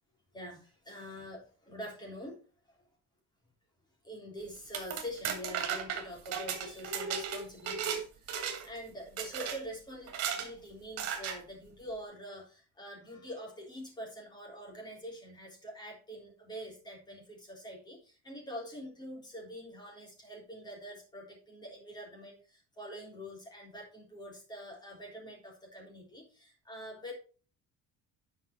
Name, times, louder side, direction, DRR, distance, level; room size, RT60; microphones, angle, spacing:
voice 1, 0.3-2.4 4.0-27.1, equal, 15° left, -1 dB, 3.6 m, -45 dB
sound 1, 4.5-8.0 8.3-8.8 9.2-9.6 10.1-10.5 11.0-11.4, right 7 dB, 55° right, 2.4 m, -35 dB
9.8 x 5.8 x 4.5 m, 0.37 s
cardioid pair, 155°, 29 cm